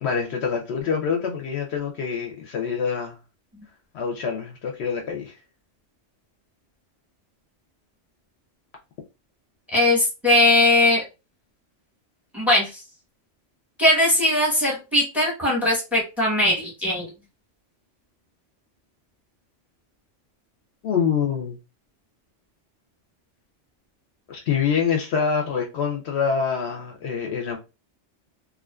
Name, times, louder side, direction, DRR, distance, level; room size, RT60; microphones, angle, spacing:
voice 1, 0.0-3.2 3.9-5.3 20.8-21.6 24.3-27.6, left 6 dB, 65° left, 0.8 m, -25 dB
voice 2, 9.7-11.0 12.3-12.8 13.8-17.1, left 1 dB, ahead, 0.9 m, -20 dB
2.4 x 2.4 x 2.2 m
omnidirectional pair, 1.3 m